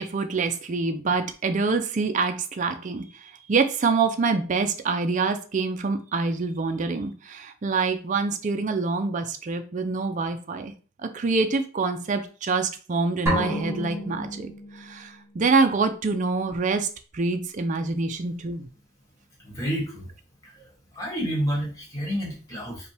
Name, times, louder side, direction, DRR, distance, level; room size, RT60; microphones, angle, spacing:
voice 1, 0.0-10.7 11.0-16.9 17.1-18.7, right 4 dB, 35° right, 6 dB, 0.4 m, -26 dB
sound 1, 13.3-15.1, equal, 15° right, 1.4 m, -30 dB
voice 2, 19.4-20.1 20.4-20.7 20.9-22.9, equal, 15° left, -2 dB, 1.4 m, -29 dB
5.2 x 2.2 x 3.3 m, 0.37 s
head